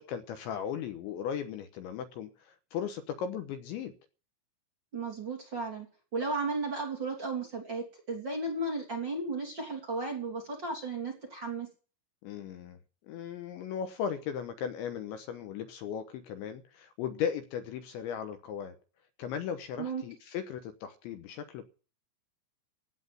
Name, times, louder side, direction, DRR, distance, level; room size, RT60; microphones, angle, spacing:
voice 1, 0.0-3.9 12.2-12.8 13.1-18.8 19.2-21.6, left 8 dB, 75° left, 3.1 m, -37 dB
voice 2, 4.9-5.9 6.1-11.7 19.8-20.0, right 3 dB, 25° right, 3.1 m, -34 dB
16.5 x 8.0 x 7.9 m
omnidirectional pair, 5.8 m